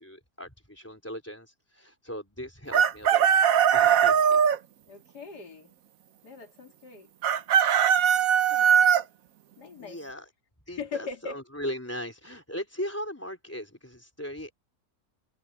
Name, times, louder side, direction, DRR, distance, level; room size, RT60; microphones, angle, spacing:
voice 1, 0.0-4.5 9.8-10.3 10.7-14.5, equal, 10° left, 3.5 m, -38 dB
Chicken rooster, 2.7-4.6 7.2-9.0, right 8 dB, 65° right, 1.2 m, -20 dB
voice 2, 4.9-5.7 6.2-7.1 7.8-8.0 8.5-8.7 9.6-10.0 10.7-11.4, left 5 dB, 85° left, 3.1 m, -40 dB
omnidirectional pair, 1.7 m